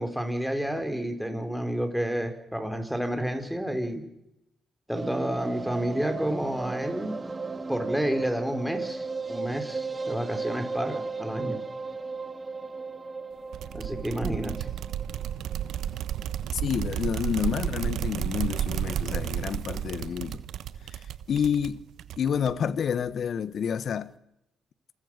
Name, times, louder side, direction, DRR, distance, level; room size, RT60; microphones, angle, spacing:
voice 1, 0.0-4.0 4.9-7.2 7.7-11.6 13.7-14.7, equal, ahead, 4.9 m, -30 dB
sound 1, 4.9-17.1 17.4-17.5 17.7-17.8 18.0-18.1, right 4 dB, 25° right, 2.2 m, -36 dB
sound 2, 13.5-22.8, right 10 dB, 75° right, 1.2 m, -32 dB
voice 2, 16.5-20.4 20.9-21.0 21.3-21.8 22.2-24.1, left 7 dB, 55° left, 1.3 m, -29 dB
28.0 x 21.0 x 6.7 m
cardioid pair, 90°, 0 cm